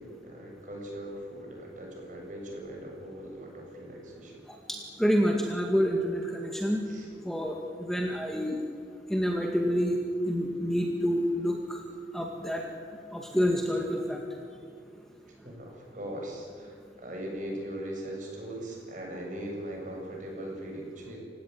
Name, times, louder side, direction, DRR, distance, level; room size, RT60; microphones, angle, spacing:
voice 1, 0.0-4.4 6.9-7.1 15.3-21.2, right 1 dB, 45° right, 0 dB, 7.5 m, -40 dB
voice 2, 4.7-6.8 7.2-8.6 9.1-10.0 10.3-11.8 12.1-12.6 13.1-14.2, equal, ahead, 1 dB, 2.1 m, -28 dB
29.0 x 17.0 x 9.5 m, 2.4 s
head